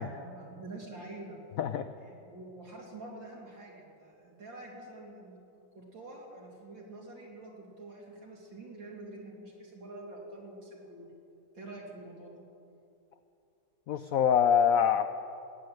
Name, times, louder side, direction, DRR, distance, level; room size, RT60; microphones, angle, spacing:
voice 1, 0.0-1.4 2.0-5.4 5.7-11.1 11.5-12.4, right 2 dB, 80° right, -2 dB, 3.6 m, -47 dB
voice 2, 13.9-15.1, left 8 dB, 80° left, 10 dB, 0.7 m, -25 dB
19.5 x 9.2 x 7.8 m, 2.7 s
omnidirectional pair, 2.0 m